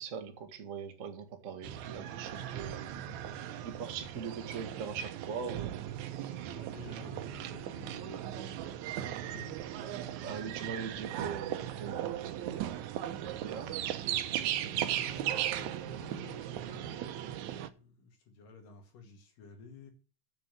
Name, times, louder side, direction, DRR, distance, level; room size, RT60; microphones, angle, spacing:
voice 1, 0.0-2.9 3.2-5.8 10.2-12.8 13.2-14.1, right 6 dB, 60° right, 0.8 m, -41 dB
sound 1, 1.6-17.7, right 11 dB, 75° right, 2.0 m, -37 dB
voice 2, 6.5-9.6 10.2-10.5 10.7-11.0 14.6-19.9, left 3 dB, 90° left, 3.7 m, -53 dB
7.3 x 6.8 x 8.0 m
omnidirectional pair, 3.7 m